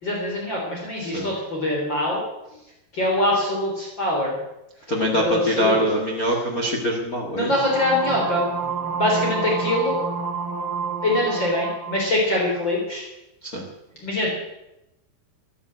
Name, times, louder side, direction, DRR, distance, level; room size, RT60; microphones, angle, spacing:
voice 1, 0.0-2.2 2.9-4.4 5.1-5.8 7.3-8.4 8.9-10.0 11.0-13.0 14.0-14.3, left 1 dB, 30° left, -3 dB, 4.3 m, -23 dB
voice 2, 4.9-7.5 13.5-13.6, equal, 55° left, 1 dB, 0.9 m, -23 dB
sound 1, 7.6-12.1, right 5 dB, 40° right, 2.4 m, -29 dB
14.0 x 11.0 x 7.9 m, 0.90 s
omnidirectional pair, 4.8 m